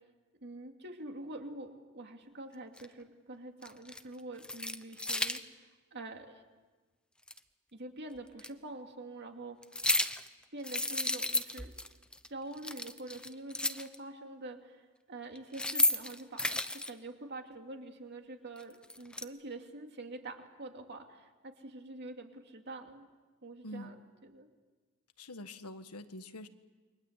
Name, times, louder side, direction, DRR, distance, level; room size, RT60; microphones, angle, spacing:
voice 1, 0.4-6.4 7.7-9.6 10.5-11.7 12.3-23.1 23.4-23.9 24.2-24.5, right 2 dB, 50° right, 4 dB, 2.7 m, -46 dB
sound 1, 2.8-2.9 3.6-4.0 4.4-5.4 7.3-7.4 8.4-8.5 9.6-10.3 10.6-11.9 12.1-12.3 12.5-14.0 15.4-16.9 18.6-19.2, left 2 dB, 5° left, 0.8 m, -32 dB
voice 2, 23.6-23.9 25.2-26.5, left 1 dB, 90° left, 9 dB, 1.6 m, -45 dB
29.0 x 24.0 x 8.3 m, 1.3 s
head